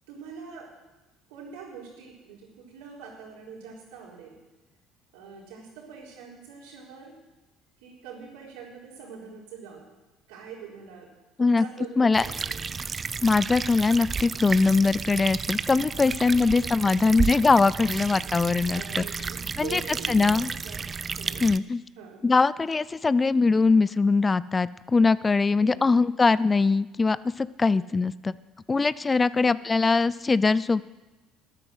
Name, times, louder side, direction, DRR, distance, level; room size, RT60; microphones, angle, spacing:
voice 1, 0.1-0.7 1.3-4.4 5.1-7.1 7.8-9.8 10.3-11.1 11.4-12.6 16.1-17.1 18.2-20.9 21.2-21.5 22.0-22.2 25.6-26.1 27.7-28.0 29.3-29.9, right 6 dB, 75° right, -2 dB, 4.1 m, -44 dB
sound 1, 12.1-21.6, right 5 dB, 35° right, 0.5 m, -32 dB
voice 2, 13.2-19.0 19.6-19.8 20.1-20.5 21.4-21.8 22.2-28.3 28.7-30.8, left 4 dB, 25° left, 19 dB, 0.4 m, -22 dB
12.5 x 9.9 x 7.9 m, 1.1 s
hypercardioid pair, 65°, 0 cm